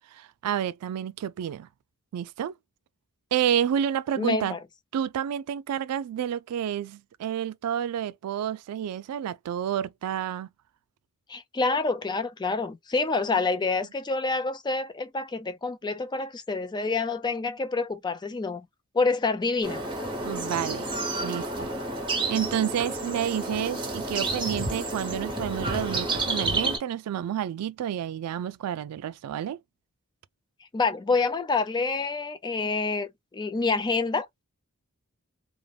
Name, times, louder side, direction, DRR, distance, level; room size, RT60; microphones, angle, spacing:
voice 1, 0.1-1.7 2.1-2.5 3.3-4.6 4.9-10.5 20.2-20.8 21.2-21.7 22.3-29.6, right 9 dB, 90° right, 0.3 m, -29 dB
voice 2, 4.2-4.6 11.3-18.7 18.9-19.8 30.7-34.4, left 3 dB, 20° left, 0.4 m, -27 dB
sound 1, 19.6-26.8, right 2 dB, 20° right, 0.9 m, -30 dB
2.5 x 2.1 x 3.2 m
head